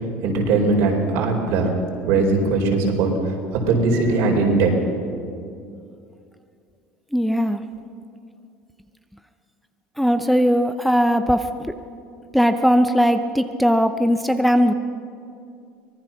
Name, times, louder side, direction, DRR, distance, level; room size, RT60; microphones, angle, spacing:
voice 1, 0.2-1.7 2.0-3.1 3.5-4.8 5.1-5.2, right 3 dB, 70° right, 2 dB, 4.6 m, -20 dB
voice 2, 7.1-7.6 10.0-11.5 12.3-14.7, equal, ahead, 8 dB, 0.7 m, -18 dB
24.5 x 18.5 x 6.0 m, 2.4 s
cardioid pair, 135°, 5 cm